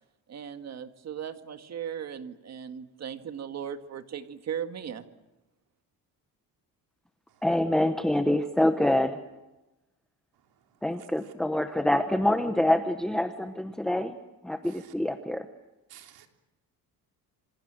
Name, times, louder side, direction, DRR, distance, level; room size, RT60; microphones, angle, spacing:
voice 1, 0.3-5.1, right 8 dB, 45° right, 2.0 m, -37 dB
voice 2, 7.4-9.2 10.8-14.2 14.4-15.5, left 1 dB, ahead, 1.0 m, -26 dB
voice 3, 10.3-11.3 14.6-14.9 15.9-16.3, right 11 dB, 80° right, 3.6 m, -55 dB
27.5 x 26.0 x 7.7 m
cardioid pair, 165°, 37 cm